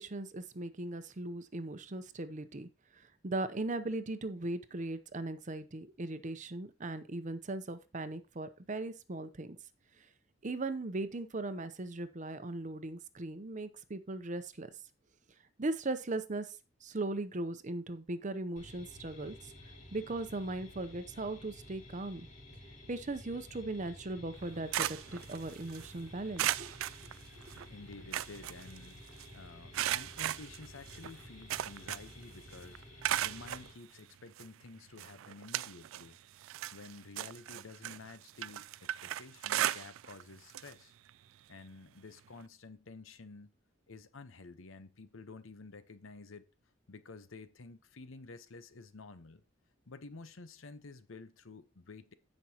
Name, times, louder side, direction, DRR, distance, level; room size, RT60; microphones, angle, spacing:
voice 1, 0.0-2.7 3.2-9.6 10.4-14.7 15.6-16.6 16.8-19.5 19.9-22.3 22.9-26.7, right 2 dB, 40° right, 0.7 m, -38 dB
sound 1, 18.6-33.7, left 1 dB, 40° left, 2.0 m, -53 dB
sound 2, 24.3-25.9 26.4-27.6 27.9-29.2 29.7-32.2 32.5-33.7 34.4-34.5 35.0-36.1 36.4-40.2 40.5-40.7 41.1-41.2 42.4-42.5, right 13 dB, 85° right, 0.3 m, -36 dB
voice 2, 27.4-36.2 36.7-40.9 41.5-43.5 43.9-46.4 46.9-49.4 49.9-52.1, left 3 dB, 80° left, 0.9 m, -51 dB
16.0 x 5.3 x 2.9 m
head